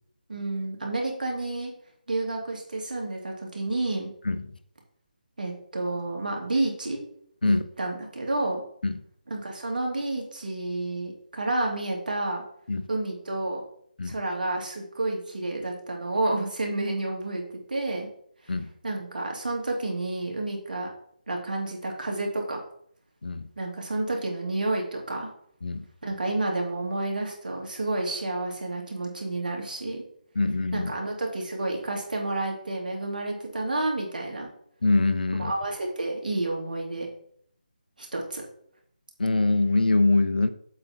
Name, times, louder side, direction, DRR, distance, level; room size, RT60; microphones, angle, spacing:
voice 1, 0.3-1.7 2.1-4.1 5.4-7.0 7.4-8.6 9.3-12.4 12.9-13.6 14.0-18.1 18.4-18.5 18.8-20.9 21.3-22.6 23.6-25.3 26.0-30.0 30.7-34.5 35.4-37.1 38.0-38.4, right 2 dB, 70° right, 0 dB, 2.6 m, -30 dB
voice 2, 30.4-30.9 34.8-35.5 39.2-40.5, left 3 dB, 75° left, 12 dB, 0.8 m, -23 dB
7.7 x 5.1 x 4.5 m, 0.64 s
figure-of-eight pair, 165°, 5 cm